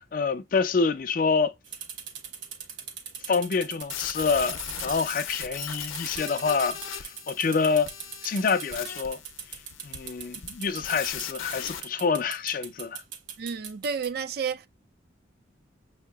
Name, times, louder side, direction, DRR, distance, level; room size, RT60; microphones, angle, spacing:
voice 1, 0.1-1.5 3.3-7.9 8.2-9.2 9.8-13.0, left 5 dB, 45° left, 0.4 m, -27 dB
sound 1, 1.6-14.1, right 7 dB, 70° right, 1.0 m, -40 dB
sound 2, 3.8-11.8, left 9 dB, 85° left, 0.6 m, -38 dB
voice 2, 13.4-14.7, right 6 dB, 50° right, 0.4 m, -31 dB
6.5 x 2.8 x 2.2 m
head